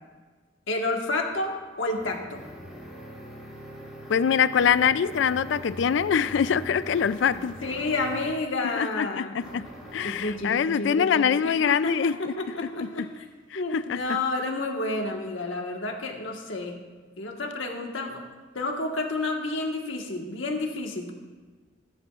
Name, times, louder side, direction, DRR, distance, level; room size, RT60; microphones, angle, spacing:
voice 1, 0.7-2.4 7.6-9.3 10.0-13.2 13.5-16.8 17.2-18.2 18.5-21.1, left 2 dB, 85° left, 1.5 m, -30 dB
sound 1, 1.3-8.5 9.4-10.5, equal, ahead, 2.6 m, -42 dB
voice 2, 4.1-7.5 8.6-9.6 9.9-12.3 12.8-12.9 13.5-14.2, left 7 dB, 70° left, 0.3 m, -24 dB
20.0 x 10.5 x 2.4 m
head